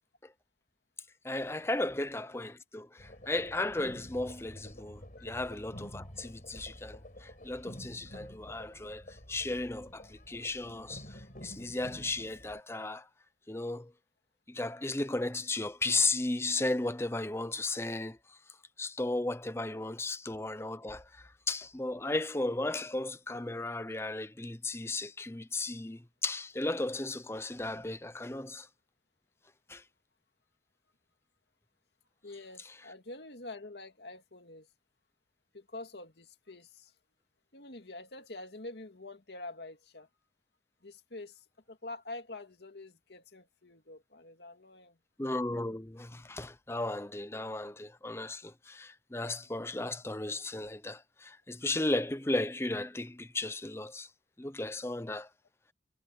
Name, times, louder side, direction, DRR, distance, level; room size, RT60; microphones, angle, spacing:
voice 1, 1.2-13.0 13.5-13.9 14.5-18.2 18.8-28.7 29.7-29.8 45.2-54.1 54.4-55.3, left 2 dB, 15° left, 0.7 m, -35 dB
sound 1, 3.0-12.6, equal, 50° left, 4.8 m, -49 dB
voice 2, 32.2-34.7 35.5-36.9 37.5-40.1 40.8-45.0, left 2 dB, 75° left, 2.2 m, -46 dB
head